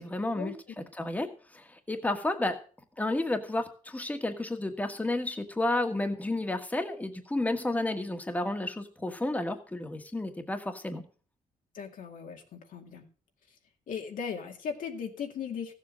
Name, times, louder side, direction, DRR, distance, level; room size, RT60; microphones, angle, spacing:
voice 1, 0.0-2.6 3.0-11.0, left 2 dB, 10° left, 6 dB, 1.5 m, -31 dB
voice 2, 11.7-13.1 13.9-15.7, left 7 dB, 75° left, 4 dB, 2.1 m, -37 dB
15.0 x 7.4 x 6.3 m, 0.40 s
cardioid pair, 135°, 14 cm